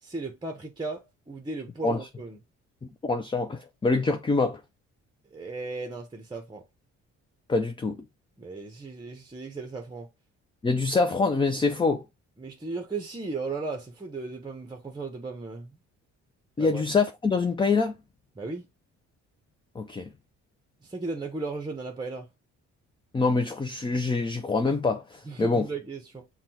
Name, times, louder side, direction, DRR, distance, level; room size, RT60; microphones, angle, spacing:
voice 1, 0.0-2.4 5.3-6.6 8.4-10.1 12.4-15.8 16.6-16.8 18.4-18.7 20.8-22.3 25.3-26.3, right 3 dB, 15° right, 0.8 m, -36 dB
voice 2, 2.8-4.6 7.5-8.0 10.6-12.0 16.6-17.9 19.8-20.1 23.1-25.7, left 3 dB, 15° left, 0.4 m, -25 dB
5.8 x 2.3 x 2.8 m
cardioid pair, 90°, 30 cm